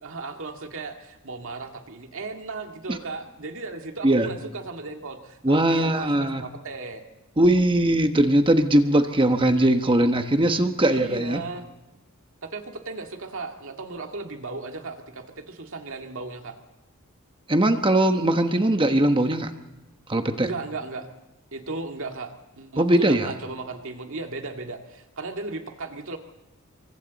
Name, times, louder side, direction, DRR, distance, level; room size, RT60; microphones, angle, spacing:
voice 1, 0.0-7.0 10.9-11.7 12.4-16.6 20.4-21.1 21.5-26.2, right 3 dB, 65° right, 4 dB, 2.1 m, -36 dB
voice 2, 5.4-6.4 7.4-11.4 17.5-19.5 20.1-20.5 22.8-23.3, right 1 dB, 25° right, 7 dB, 1.2 m, -20 dB
27.5 x 24.0 x 4.1 m, 1.0 s
head